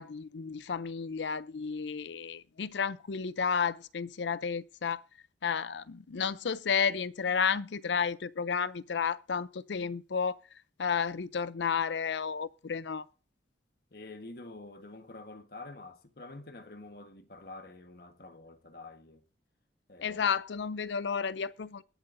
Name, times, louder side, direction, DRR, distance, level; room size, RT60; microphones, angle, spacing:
voice 1, 0.0-5.0 5.4-10.4 10.8-13.1 20.0-21.8, left 6 dB, 75° left, 0.5 m, -32 dB
voice 2, 13.9-19.2 19.9-20.2, left 2 dB, 55° left, 1.3 m, -47 dB
21.5 x 7.8 x 2.6 m
head